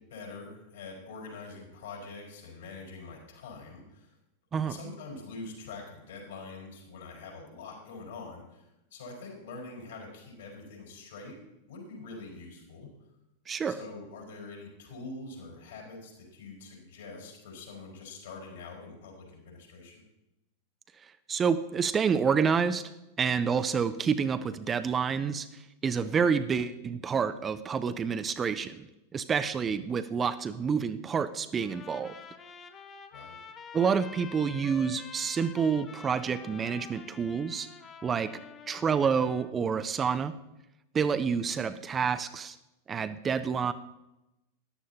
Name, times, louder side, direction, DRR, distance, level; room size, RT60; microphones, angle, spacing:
voice 1, 0.0-4.2 4.6-11.4 11.7-12.9 13.7-20.0 29.7-29.8 33.1-33.4, left 3 dB, 60° left, -1 dB, 4.3 m, -45 dB
voice 2, 13.5-13.8 21.3-22.9 23.2-32.1 33.7-37.7 38.0-38.3 38.7-40.3 40.9-42.6 42.9-43.7, right 6 dB, 20° right, 11 dB, 0.5 m, -28 dB
Trumpet, 31.6-39.5, left 6 dB, 25° left, 0.9 m, -47 dB
14.0 x 11.0 x 2.8 m, 0.93 s
figure-of-eight pair, 90°, 0 cm